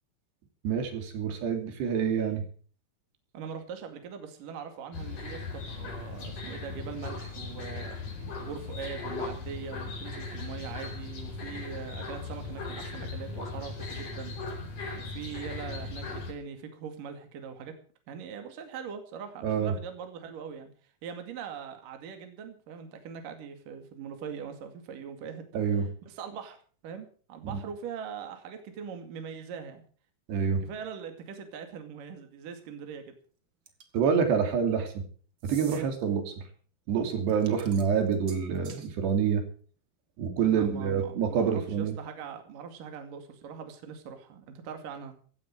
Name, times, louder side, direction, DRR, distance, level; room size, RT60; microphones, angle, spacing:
voice 1, 0.6-2.4 19.4-19.7 25.5-25.9 27.4-27.5 30.3-30.6 33.9-35.0 35.4-36.2 36.9-39.4 40.2-41.9, right 7 dB, 75° right, 6 dB, 4.8 m, -27 dB
voice 2, 3.3-8.0 8.4-14.4 15.0-17.7 18.1-20.7 21.0-25.6 26.1-26.6 26.8-29.8 30.6-33.1 35.7-35.9 40.4-45.1, right 6 dB, 55° right, 6 dB, 3.6 m, -41 dB
sound 1, 4.9-16.3, left 3 dB, 45° left, 5.5 m, -38 dB
sound 2, 33.7-34.0 35.4-35.8 37.3-38.9, right 6 dB, 40° right, 2.0 m, -48 dB
16.0 x 14.0 x 4.8 m, 0.43 s
omnidirectional pair, 5.0 m